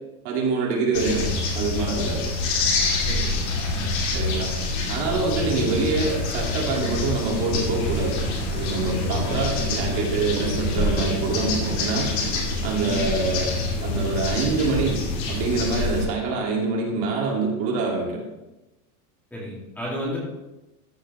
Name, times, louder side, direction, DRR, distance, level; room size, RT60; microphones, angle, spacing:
voice 1, 0.2-2.2 4.1-4.5 4.9-8.2 8.5-12.1 12.6-13.5 13.8-15.0 15.3-18.2, right 3 dB, 45° right, -2 dB, 2.3 m, -25 dB
sound 1, 0.9-16.0, left 2 dB, 45° left, 2.3 m, -26 dB
sound 2, 2.2-8.9, left 3 dB, 85° left, 3.7 m, -43 dB
voice 2, 3.0-3.9 12.9-13.1 19.3-20.2, left 1 dB, 5° left, -6 dB, 2.3 m, -33 dB
sound 3, 6.9-16.3, right 4 dB, 80° right, 1.5 m, -37 dB
14.0 x 6.5 x 3.2 m, 1.0 s
supercardioid pair, 175°, 43 cm